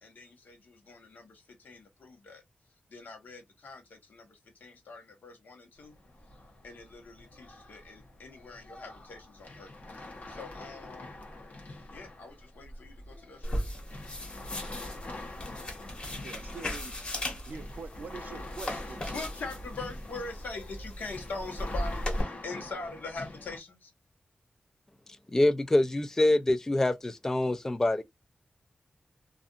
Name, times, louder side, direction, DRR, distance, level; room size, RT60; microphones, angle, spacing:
voice 1, 0.0-2.4 2.9-6.0 6.6-11.1 11.9-13.8 19.1-23.9, left 3 dB, 90° left, 1.2 m, -43 dB
sound 1, 5.8-23.6, left 2 dB, 55° left, 1.0 m, -46 dB
sound 2, 13.4-22.2, left 1 dB, 35° left, 1.2 m, -37 dB
voice 2, 16.2-16.9 17.5-19.2, right 5 dB, 70° right, 0.4 m, -44 dB
voice 3, 25.3-28.0, left 1 dB, 15° left, 0.3 m, -25 dB
2.5 x 2.5 x 2.4 m
wide cardioid pair, 155°, 3 cm